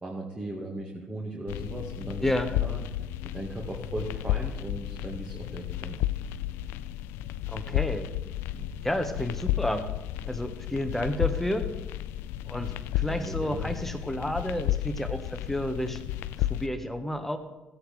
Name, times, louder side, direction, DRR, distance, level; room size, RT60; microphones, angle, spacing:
voice 1, 0.0-2.8 3.3-6.0 8.5-8.7 13.0-13.7, right 1 dB, 25° right, -1 dB, 1.9 m, -38 dB
sound 1, 1.5-16.7, left 13 dB, 80° left, 0.3 m, -32 dB
voice 2, 7.5-8.1 8.8-9.9 10.2-11.7 12.4-16.0 16.4-17.4, left 1 dB, 5° left, 7 dB, 1.4 m, -31 dB
15.5 x 9.3 x 3.4 m, 1.1 s
supercardioid pair, 65°, 4 cm